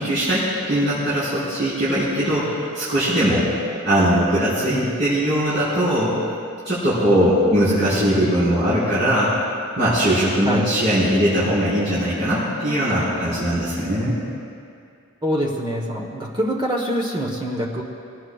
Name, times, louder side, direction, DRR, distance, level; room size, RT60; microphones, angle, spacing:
voice 1, 0.0-3.5 3.8-6.1 6.6-9.3 9.8-14.2, equal, 55° right, -12 dB, 4.4 m, -20 dB
voice 2, 15.2-17.8, equal, 20° right, -1 dB, 1.2 m, -24 dB
22.0 x 18.0 x 2.5 m, 2.4 s
head